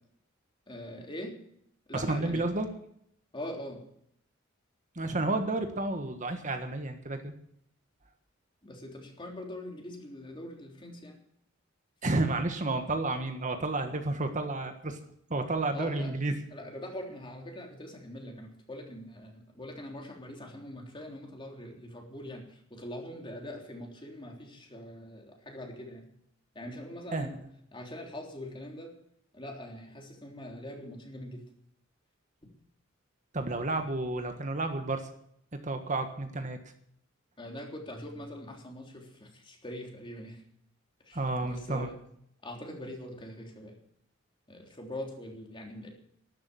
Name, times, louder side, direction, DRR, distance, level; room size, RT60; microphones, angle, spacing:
voice 1, 0.7-1.3 1.9-2.5 3.3-3.8 8.6-11.2 15.7-16.1 16.5-26.1 26.6-27.4 27.7-28.9 29.3-31.4 37.4-40.4 41.0-42.0 42.4-43.8 44.5-45.9, left 1 dB, 25° left, 1 dB, 3.4 m, -43 dB
voice 2, 1.9-2.7 4.9-7.3 12.0-15.0 15.3-16.3 27.1-27.3 33.3-35.1 35.6-36.6 41.1-41.9, right 2 dB, 40° right, 6 dB, 1.5 m, -31 dB
12.5 x 12.0 x 7.6 m, 0.70 s
head